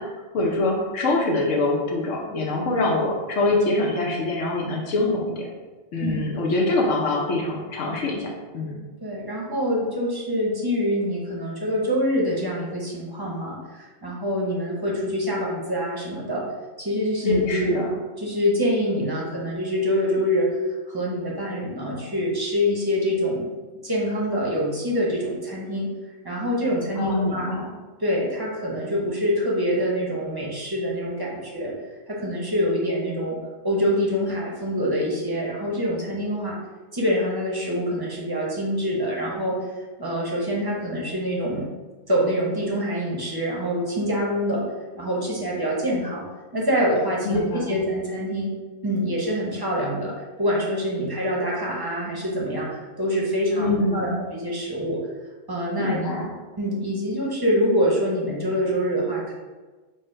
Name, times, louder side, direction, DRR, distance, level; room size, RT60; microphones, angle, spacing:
voice 1, 0.0-5.5 5.9-8.8 17.2-17.9 27.0-27.7 47.2-47.8 53.6-54.2 55.8-56.3, left 2 dB, 90° left, -1 dB, 1.2 m, -24 dB
voice 2, 6.0-6.3 9.0-16.4 16.8-17.7 18.2-20.6 20.9-23.5 23.8-25.9 26.2-27.5 28.0-31.7 32.1-33.4 33.6-36.6 36.9-39.7 40.0-41.7 42.1-44.6 44.9-46.2 46.5-48.5 48.8-55.0 55.5-56.0 56.6-59.3, equal, 25° right, -4 dB, 0.7 m, -25 dB
4.8 x 2.2 x 4.4 m, 1.3 s
omnidirectional pair, 1.2 m